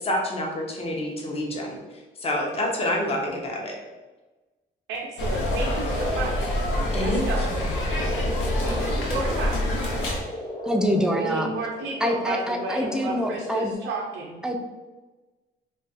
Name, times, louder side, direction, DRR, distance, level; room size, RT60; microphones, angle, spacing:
voice 1, 0.0-1.8 2.2-3.8 6.9-7.7, left 1 dB, 30° left, 0 dB, 0.7 m, -28 dB
voice 2, 4.9-6.3 7.0-7.5 8.6-9.5 11.2-14.4, right 3 dB, 85° right, -2 dB, 0.5 m, -32 dB
sound 1, 5.2-10.2, left 1 dB, 75° left, 0.8 m, -26 dB
sound 2, 5.8-13.7, left 1 dB, 50° left, 1.0 m, -36 dB
voice 3, 10.6-11.5 12.0-13.7 14.4-14.6, equal, 5° right, 3 dB, 0.4 m, -25 dB
2.4 x 2.3 x 3.9 m, 1.2 s
cardioid pair, 90°, 20 cm